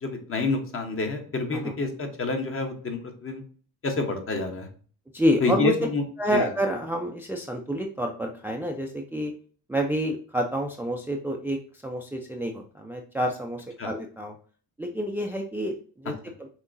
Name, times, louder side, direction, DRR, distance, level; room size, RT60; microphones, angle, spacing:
voice 1, 0.0-3.4 3.8-4.7 5.4-6.0 6.3-6.5 13.8-13.9, left 3 dB, 35° left, 4 dB, 1.1 m, -28 dB
voice 2, 5.1-5.7 6.2-9.3 9.7-11.6 11.8-14.3 14.8-16.5, equal, 5° right, 2 dB, 0.5 m, -28 dB
5.9 x 2.9 x 2.6 m, 0.43 s
cardioid pair, 105°, 37 cm